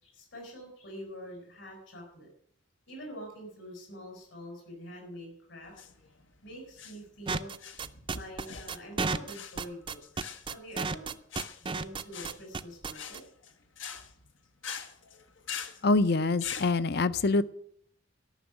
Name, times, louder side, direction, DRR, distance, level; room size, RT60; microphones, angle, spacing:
voice 1, 0.0-2.3 2.9-5.7 6.4-7.5 8.1-10.0 10.5-11.2 11.6-13.2, equal, 75° left, 1 dB, 4.6 m, -45 dB
sound 1, 5.6-16.7, left 7 dB, 90° left, 1.2 m, -44 dB
sound 2, 7.3-13.2, right 4 dB, 25° right, 0.5 m, -32 dB
voice 2, 15.8-17.4, left 3 dB, 55° left, 15 dB, 0.6 m, -25 dB
13.0 x 6.1 x 8.8 m, 0.67 s
head